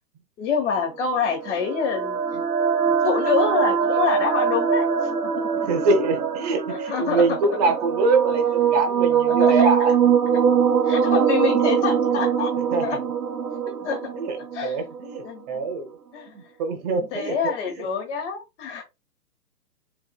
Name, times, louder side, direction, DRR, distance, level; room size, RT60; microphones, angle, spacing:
voice 1, 0.4-2.2 3.0-4.9 5.2-5.3 6.7-7.2 9.3-9.5 10.9-12.5 12.8-13.0 13.8-14.0 14.5-14.8 15.2-15.4 16.1-16.3 17.1-18.8, left 6 dB, 50° left, 1.1 m, -26 dB
sound 1, 1.0-15.2, right 7 dB, 80° right, 0.8 m, -22 dB
voice 2, 5.6-10.0 12.1-12.2 12.6-12.9 14.1-14.4 14.6-15.9 16.3-17.9, right 3 dB, 25° right, 0.8 m, -24 dB
4.2 x 2.6 x 2.3 m
figure-of-eight pair, 125°, 47 cm